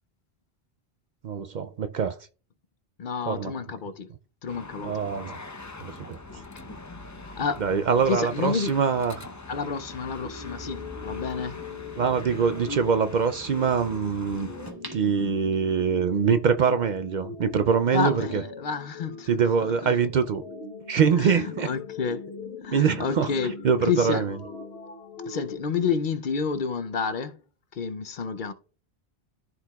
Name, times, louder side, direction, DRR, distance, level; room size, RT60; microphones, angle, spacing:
voice 1, 1.2-2.1 3.3-3.5 4.8-5.4 5.8-6.2 7.6-9.3 12.0-14.5 14.9-18.4 19.3-20.4 20.9-21.7 22.7-23.3 23.6-24.4, right 6 dB, 55° right, 0.6 m, -24 dB
voice 2, 3.0-4.1 4.4-5.0 6.3-6.7 7.2-7.7 8.1-8.8 9.5-11.6 17.9-19.3 19.8-19.9 21.2-22.3 22.6-23.6 23.8-24.2 25.3-27.4 27.7-28.5, left 5 dB, 60° left, 0.7 m, -30 dB
sound 1, 4.5-14.7, left 2 dB, 20° left, 0.5 m, -42 dB
sound 2, 9.5-25.6, left 4 dB, 80° left, 1.3 m, -41 dB
sound 3, 14.7-16.0 16.5-16.6, right 1 dB, 20° right, 1.4 m, -43 dB
13.5 x 4.7 x 2.3 m
omnidirectional pair, 1.0 m